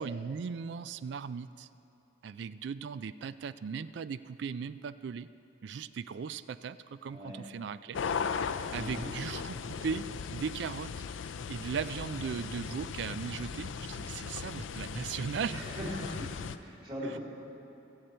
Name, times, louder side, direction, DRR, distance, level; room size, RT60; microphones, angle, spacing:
voice 1, 0.0-1.7 2.2-5.3 5.6-8.1 8.7-10.1 10.3-15.7 17.1-17.2, right 6 dB, 65° right, 15 dB, 0.3 m, -38 dB
voice 2, 7.1-7.4 8.7-9.1 15.5-16.3 16.6-17.2, equal, 25° right, -4 dB, 2.4 m, -39 dB
sound 1, 7.9-16.6, left 6 dB, 80° left, 0.4 m, -38 dB
21.5 x 7.9 x 4.4 m, 2.9 s
head